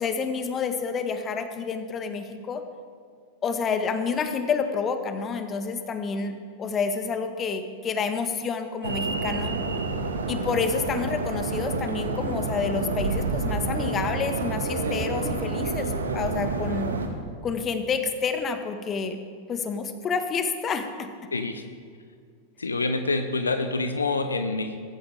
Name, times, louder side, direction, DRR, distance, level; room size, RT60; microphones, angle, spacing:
voice 1, 0.0-2.6 3.4-6.3 6.6-9.6 10.3-16.9 17.4-19.2 19.5-21.1, left 5 dB, 25° left, 8 dB, 1.5 m, -29 dB
sound 1, 8.8-17.1, right 3 dB, 70° right, 1.7 m, -28 dB
voice 2, 21.3-21.6 22.6-24.8, left 3 dB, 75° left, 9 dB, 0.9 m, -26 dB
23.0 x 13.5 x 3.5 m, 2.1 s
figure-of-eight pair, 90°, 0 cm